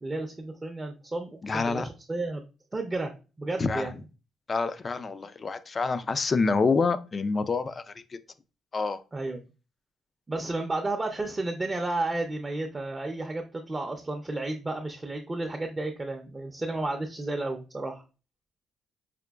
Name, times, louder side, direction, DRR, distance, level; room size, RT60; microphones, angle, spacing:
voice 1, 0.0-2.4 2.7-3.1 3.4-3.9 9.1-9.4 10.3-18.0, right 2 dB, 25° right, 0.5 m, -32 dB
voice 2, 1.4-1.9 3.6-3.9 4.5-8.2 8.7-9.0, left 4 dB, 35° left, 0.3 m, -27 dB
4.9 x 2.1 x 2.3 m
cardioid pair, 90°, 0 cm